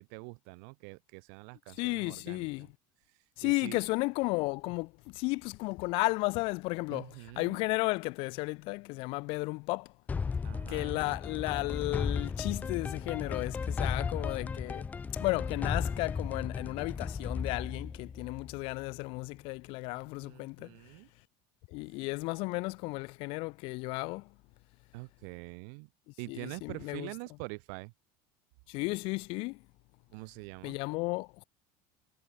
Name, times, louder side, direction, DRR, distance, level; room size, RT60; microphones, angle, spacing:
voice 1, 0.0-2.7 3.4-3.8 6.9-7.6 10.4-11.0 20.2-21.1 24.9-25.9 26.2-27.9 30.1-30.8, right 39 dB, 70° right, 4.7 m, -45 dB
voice 2, 1.8-2.7 3.4-9.9 10.7-14.8 15.2-20.7 21.7-24.3 26.3-27.1 28.7-29.6 30.6-31.4, left 25 dB, 60° left, 1.3 m, -34 dB
sound 1, 10.1-18.9, left 5 dB, 15° left, 0.7 m, -35 dB
cardioid pair, 160°, 11 cm